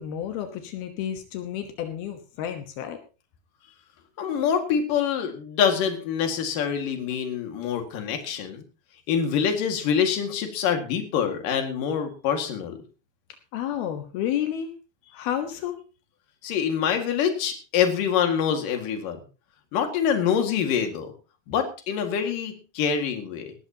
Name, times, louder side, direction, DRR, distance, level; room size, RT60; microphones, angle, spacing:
voice 1, 0.0-3.0 13.5-14.7 15.1-15.8, left 10 dB, 85° left, 6 dB, 3.3 m, -31 dB
voice 2, 4.2-8.6 9.1-12.8 16.4-19.2 19.7-21.1 21.5-23.5, left 7 dB, 65° left, 5 dB, 3.5 m, -25 dB
19.0 x 14.0 x 2.9 m, 0.33 s
omnidirectional pair, 4.3 m